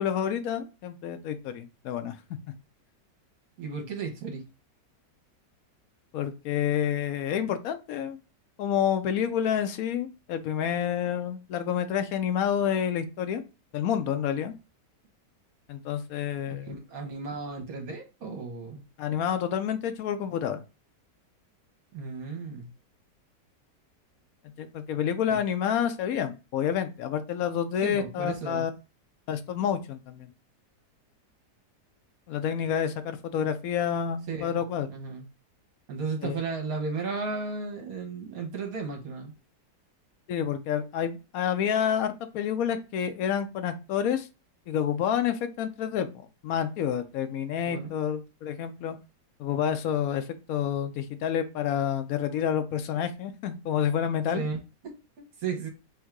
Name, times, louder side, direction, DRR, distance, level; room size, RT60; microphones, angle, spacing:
voice 1, 0.0-2.1 6.1-8.2 8.6-13.4 13.7-14.5 15.7-16.8 19.0-20.6 24.6-28.7 29.3-30.3 32.3-34.9 36.2-36.4 40.3-44.3 44.7-46.1 46.4-49.0 49.4-54.4, left 9 dB, 70° left, 9 dB, 0.9 m, -29 dB
voice 2, 3.6-4.4 16.6-18.8 21.9-22.7 25.3-25.4 27.8-28.6 34.3-34.6 34.9-35.2 35.9-39.3 47.7-47.9 54.3-55.7, right 4 dB, 60° right, 2 dB, 1.4 m, -34 dB
3.6 x 2.6 x 4.5 m, 0.30 s
omnidirectional pair, 1.8 m